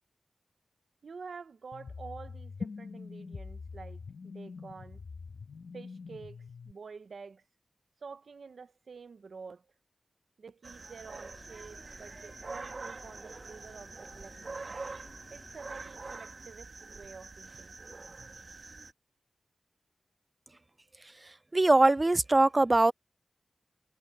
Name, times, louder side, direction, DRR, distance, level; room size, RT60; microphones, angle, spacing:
voice 1, 1.0-5.0 5.7-7.4 8.0-9.7 10.4-14.6 15.3-17.7, right 5 dB, 85° right, 1.0 m, -48 dB
sound 1, 1.7-6.7, left 4 dB, 70° left, 2.2 m, -44 dB
sound 2, 10.6-18.9, right 3 dB, 50° right, 1.5 m, -45 dB
sound 3, 11.1-16.2, left 3 dB, 40° left, 3.9 m, -57 dB
voice 2, 21.5-22.9, right 2 dB, 30° right, 0.3 m, -22 dB
wide cardioid pair, 110°, 0 cm